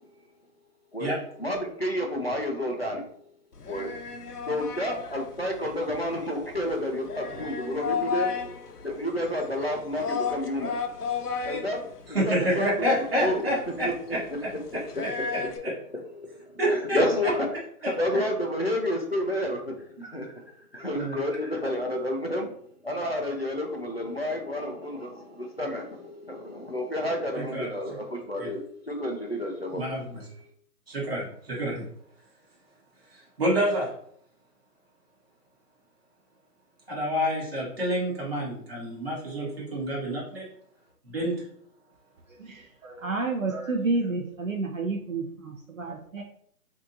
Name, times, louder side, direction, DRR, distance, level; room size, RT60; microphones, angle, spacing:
voice 1, 1.4-3.2 3.7-3.9 4.5-8.6 8.8-10.8 11.4-12.9 13.2-13.5 13.8-13.9 15.2-15.3 15.9-17.5 17.8-22.5 22.8-29.9, left 1 dB, 40° left, 1 dB, 0.5 m, -30 dB
sound 1, 3.5-15.6, left 6 dB, 75° left, 0.9 m, -35 dB
voice 2, 12.1-15.1 15.6-15.7 16.6-17.0 17.8-17.9 20.9-21.2 27.4-27.7 28.4-28.5 29.7-30.2 30.9-31.8 33.4-33.9 36.9-40.5 41.1-41.3, equal, 40° right, -5 dB, 1.8 m, -28 dB
voice 3, 42.4-46.2, right 3 dB, 60° right, 1 dB, 0.7 m, -30 dB
6.0 x 2.8 x 2.7 m, 0.65 s
hypercardioid pair, 180°, 46 cm